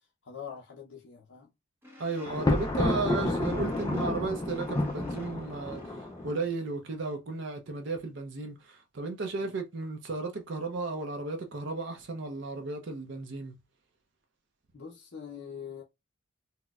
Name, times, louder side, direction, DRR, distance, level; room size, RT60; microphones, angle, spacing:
voice 1, 0.2-1.5 9.4-9.5 14.7-15.8, left 7 dB, 60° left, 0.6 m, -43 dB
sound 1, 1.8-6.4, right 1 dB, 10° right, 0.8 m, -50 dB
voice 2, 2.0-13.6, right 3 dB, 60° right, 0.5 m, -34 dB
Thunder, 2.3-6.4, left 1 dB, 15° left, 0.3 m, -30 dB
4.1 x 2.1 x 2.3 m
head